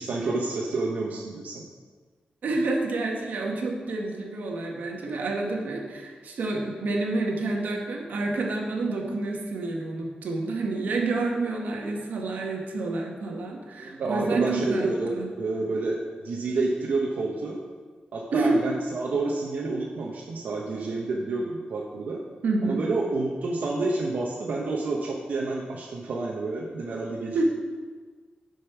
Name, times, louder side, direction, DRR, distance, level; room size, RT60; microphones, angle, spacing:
voice 1, 0.0-1.6 13.8-17.6 18.1-22.2 22.6-27.4, right 3 dB, 70° right, -3 dB, 1.0 m, -29 dB
voice 2, 2.4-15.3 18.3-18.6 22.4-22.8 27.3-27.4, right 3 dB, 90° right, 1 dB, 1.4 m, -28 dB
8.6 x 5.4 x 5.9 m, 1.5 s
wide cardioid pair, 180°, 3 cm